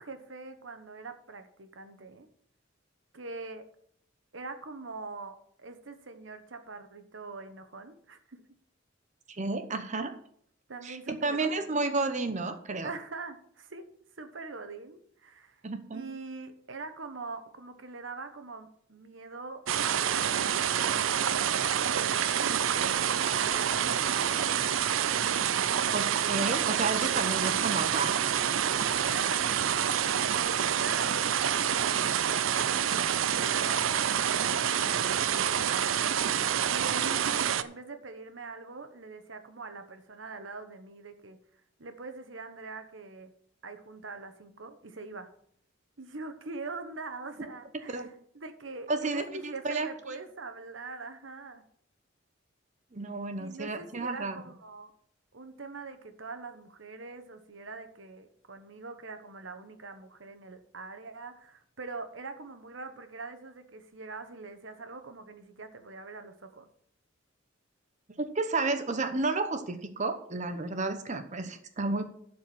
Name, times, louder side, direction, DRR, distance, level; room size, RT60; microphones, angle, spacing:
voice 1, 0.0-2.3 3.1-3.6 4.3-8.4 10.7-11.9 12.8-13.8 14.2-15.6 15.9-19.6 20.0-21.2 21.7-24.5 29.0-30.3 30.8-41.4 41.8-43.3 43.6-45.3 46.0-51.6 53.4-54.9 55.3-66.7, right 3 dB, 70° right, 8 dB, 1.2 m, -43 dB
voice 2, 9.3-10.1 10.8-12.9 15.6-16.1 25.9-28.2 47.9-48.1 48.9-49.9 52.9-54.4 68.2-72.0, right 3 dB, 40° right, 8 dB, 0.9 m, -31 dB
sound 1, 19.7-37.6, right 9 dB, 90° right, 0.5 m, -27 dB
12.0 x 4.8 x 7.1 m, 0.66 s
head